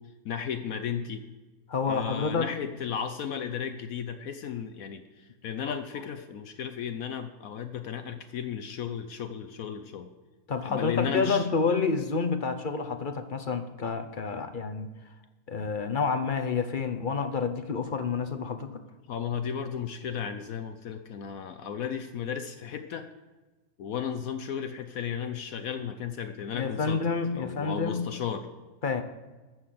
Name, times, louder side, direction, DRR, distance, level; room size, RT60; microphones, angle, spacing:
voice 1, 0.2-1.2 1.8-10.1 10.6-11.5 19.1-23.1 23.8-27.0 27.4-28.5, left 7 dB, 70° left, 8 dB, 1.2 m, -34 dB
voice 2, 1.7-2.5 5.7-5.8 10.5-14.9 15.5-18.8 26.5-28.1 28.8-29.0, left 5 dB, 40° left, 8 dB, 0.8 m, -29 dB
13.0 x 6.2 x 7.6 m, 1.2 s
omnidirectional pair, 1.6 m